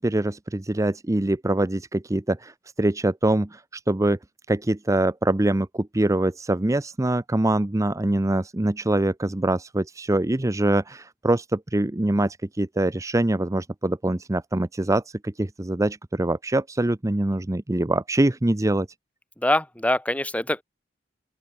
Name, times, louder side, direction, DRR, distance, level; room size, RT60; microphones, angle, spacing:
voice 1, 0.0-4.2 4.5-18.9, right 1 dB, 15° right, 0.6 m, -24 dB
voice 2, 19.4-20.6, left 1 dB, 10° left, 2.0 m, -23 dB
open air
head